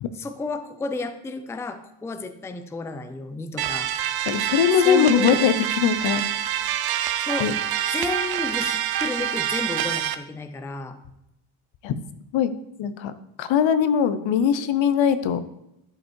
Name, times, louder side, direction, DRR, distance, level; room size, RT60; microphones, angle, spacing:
voice 1, 0.1-3.9 4.8-5.4 7.2-7.5 7.9-11.0, left 3 dB, 5° left, 9 dB, 0.4 m, -31 dB
sound 1, 3.6-10.1, right 10 dB, 50° right, 0.6 m, -26 dB
voice 2, 4.3-6.2 7.4-7.5 11.8-11.9 12.3-12.5 12.8-13.1 13.4-15.4, left 8 dB, 70° left, 12 dB, 0.9 m, -21 dB
11.5 x 5.4 x 4.5 m, 0.86 s
cardioid pair, 155°, 47 cm